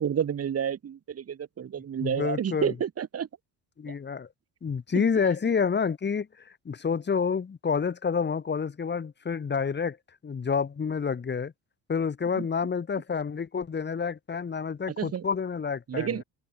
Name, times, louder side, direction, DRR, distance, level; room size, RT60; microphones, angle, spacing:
voice 1, 0.0-3.3 3.9-4.0 4.9-5.0 12.4-12.5 14.9-15.2 15.9-16.2, right 8 dB, 40° right, 4.8 m, -30 dB
voice 2, 2.0-2.7 3.8-4.3 4.6-10.0 10.2-11.5 11.9-16.2, left 6 dB, 30° left, 5.3 m, -28 dB
open air
cardioid pair, 135°, 36 cm